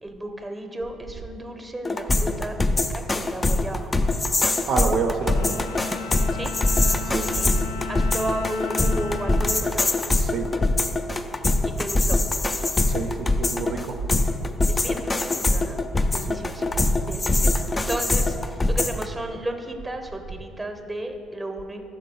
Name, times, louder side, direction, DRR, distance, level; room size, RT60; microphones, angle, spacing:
voice 1, 0.0-3.9 6.3-6.5 6.9-7.6 7.9-9.9 11.6-12.2 14.7-15.8 16.1-16.7 17.1-21.8, right 1 dB, 15° right, 6 dB, 0.8 m, -34 dB
sound 1, 1.8-19.1, left 2 dB, 25° left, 0.4 m, -23 dB
voice 2, 4.7-5.6 7.1-7.3 10.1-10.5 12.9-14.0 16.2-16.4, right 4 dB, 60° right, 3 dB, 0.5 m, -28 dB
Bowed string instrument, 5.2-10.7, left 7 dB, 80° left, 0.4 m, -36 dB
6.1 x 4.1 x 5.6 m, 2.6 s
hypercardioid pair, 55°, 0 cm